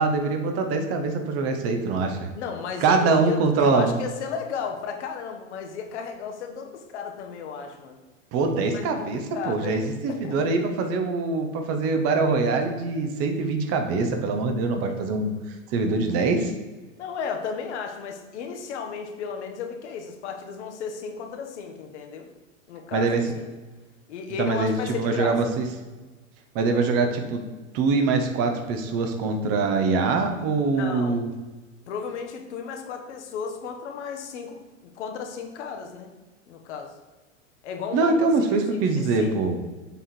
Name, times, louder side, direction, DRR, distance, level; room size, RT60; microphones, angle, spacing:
voice 1, 0.0-2.3 2.8-4.0 8.3-16.5 22.9-23.2 24.4-25.6 26.5-27.4 27.7-31.3 37.9-39.6, right 4 dB, 35° right, 5 dB, 0.9 m, -24 dB
voice 2, 2.3-8.0 8.7-9.1 9.3-9.8 10.1-10.4 17.0-22.3 22.7-23.5 24.1-25.4 30.8-31.2 31.9-36.1 36.5-36.9 37.6-38.5 39.0-39.4, left 6 dB, 55° left, 4 dB, 1.1 m, -34 dB
7.1 x 3.7 x 4.4 m, 1.2 s
figure-of-eight pair, 95°, 40 cm